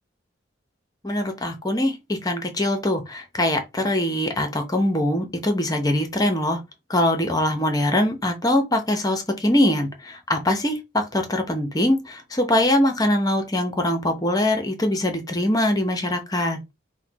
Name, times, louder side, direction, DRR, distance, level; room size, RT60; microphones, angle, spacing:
voice 1, 1.0-6.6 6.9-16.6, left 1 dB, 20° left, 0.9 m, -22 dB
4.5 x 2.2 x 4.6 m
head